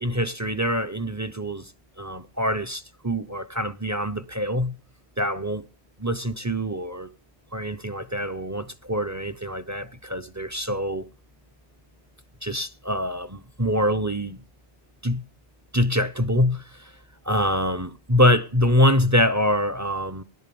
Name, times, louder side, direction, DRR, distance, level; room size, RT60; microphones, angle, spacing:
voice 1, 0.0-1.7 2.0-4.7 5.2-5.6 6.0-7.1 7.5-11.1 12.4-14.4 15.0-15.2 15.7-16.9 17.3-20.2, left 1 dB, 20° right, 0.6 m, -24 dB
18.5 x 11.5 x 7.0 m
omnidirectional pair, 1.2 m